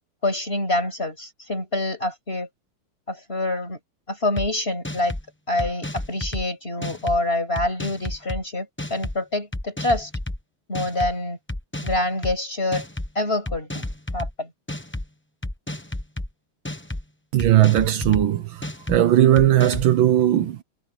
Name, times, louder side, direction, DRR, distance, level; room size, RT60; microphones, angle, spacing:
voice 1, 0.2-2.5 3.1-3.8 4.1-5.2 5.5-10.1 10.7-11.4 11.8-12.9 13.2-13.8 14.1-14.5, left 2 dB, 25° left, 7.2 m, -26 dB
sound 1, 4.4-4.5 4.8-5.2 5.6-6.4 6.8-7.2 7.6-8.4 8.8-9.1 9.5-10.4 10.7-11.1 11.5-12.3 12.7-13.1 13.5-14.3 14.7-15.0 15.4-16.3 16.6-17.0 17.4-18.2 18.6-19.0 19.4-19.9, left 1 dB, 10° left, 0.7 m, -31 dB
voice 2, 17.3-18.4 18.9-20.6, right 12 dB, 75° right, 1.6 m, -17 dB
omnidirectional pair, 2.3 m